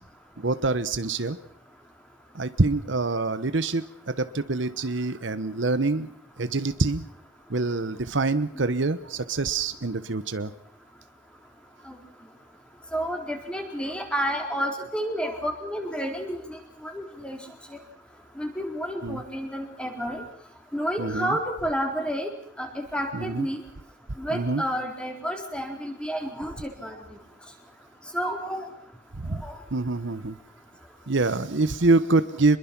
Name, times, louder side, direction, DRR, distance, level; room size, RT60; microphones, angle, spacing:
voice 1, 0.4-1.4 2.3-6.1 6.4-7.1 7.5-10.5 19.0-19.2 21.0-21.4 23.1-23.5 24.3-24.6 29.2-29.4 29.7-30.4 31.1-32.6, right 3 dB, 65° right, 12 dB, 1.0 m, -25 dB
voice 2, 12.9-17.4 17.7-17.8 18.4-20.2 20.7-22.3 22.6-23.6 24.2-27.0 28.1-28.7 29.4-29.5, equal, 5° left, 3 dB, 3.9 m, -30 dB
26.0 x 22.0 x 6.0 m, 0.67 s
head